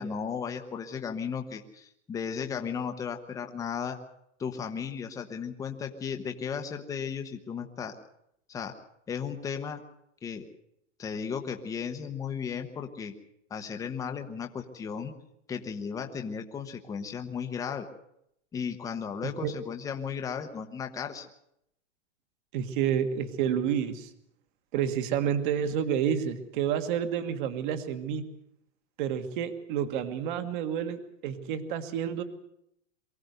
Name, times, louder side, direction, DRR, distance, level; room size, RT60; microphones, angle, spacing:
voice 1, 0.0-4.0 4.4-7.9 8.5-8.7 9.1-9.8 10.2-10.5 11.0-13.1 13.5-15.1 15.5-17.9 18.5-21.3, left 6 dB, 10° left, 5 dB, 1.0 m, -35 dB
voice 2, 22.5-24.1 24.7-28.2 29.0-32.2, right 8 dB, 40° right, 9 dB, 1.7 m, -29 dB
23.5 x 15.5 x 8.1 m, 0.76 s
supercardioid pair, 165°, 37 cm